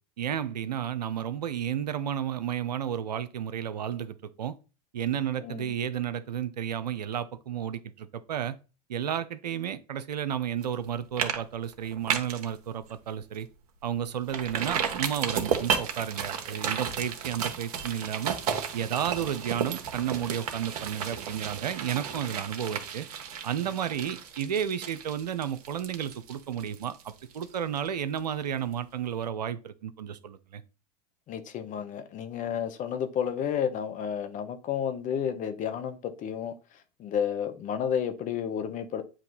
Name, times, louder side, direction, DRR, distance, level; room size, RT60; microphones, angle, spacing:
voice 1, 0.2-4.5 4.9-8.6 8.9-13.5 13.8-18.4 18.7-23.1 23.4-30.6, right 9 dB, 85° right, 0.6 m, -32 dB
voice 2, 5.4-5.8 31.3-36.5 37.0-39.0, left 8 dB, 40° left, 1.0 m, -31 dB
sound 1, 10.6-10.9 11.2-11.4 11.7-12.5 12.9-13.0 13.4-13.5 14.3-27.9 28.2-28.3, right 7 dB, 70° right, 1.3 m, -33 dB
9.0 x 3.0 x 4.0 m
hypercardioid pair, 95°, 20 cm